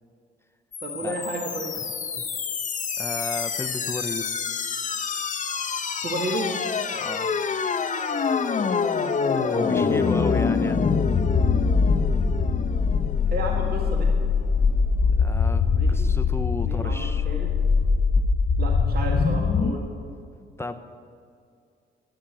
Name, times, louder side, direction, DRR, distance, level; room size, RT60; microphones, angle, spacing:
sound 1, 0.7-19.7, left 5 dB, 40° left, 0.9 m, -24 dB
voice 1, 0.8-1.8 6.0-6.5 9.3-10.5 13.3-14.1 15.6-16.1 16.6-17.5 18.6-19.8, right 1 dB, 50° right, 0 dB, 1.9 m, -32 dB
voice 2, 3.0-4.3 6.9-7.3 9.5-10.8 15.2-17.3 20.6-20.8, left 2 dB, 10° left, 8 dB, 0.7 m, -33 dB
11.0 x 10.0 x 7.5 m, 2.3 s
cardioid pair, 90°, 20 cm